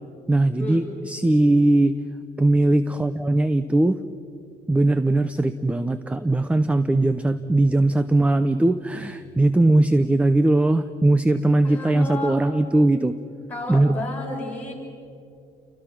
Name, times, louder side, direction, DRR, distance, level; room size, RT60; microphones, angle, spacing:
voice 1, 0.3-2.0 2.4-4.0 4.7-13.2 13.7-14.0, right 2 dB, 10° right, 12 dB, 0.7 m, -20 dB
voice 2, 11.6-12.4 13.5-14.7, left 2 dB, 10° left, -3 dB, 7.6 m, -32 dB
29.5 x 23.5 x 6.0 m, 2.5 s
cardioid pair, 110°, 17 cm